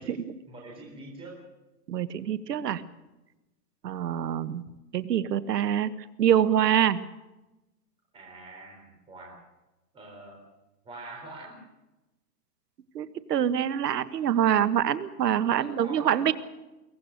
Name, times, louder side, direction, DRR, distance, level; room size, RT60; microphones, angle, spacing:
voice 1, 0.0-1.4 8.1-9.4 9.9-10.4 10.8-11.6 15.5-16.3, right 2 dB, 10° right, -1 dB, 4.0 m, -45 dB
voice 2, 1.9-2.8 3.8-4.6 4.9-5.9 6.2-7.0 12.9-16.3, right 9 dB, 70° right, 14 dB, 1.6 m, -25 dB
23.0 x 17.5 x 6.6 m, 1.0 s
hypercardioid pair, 165°, 50 cm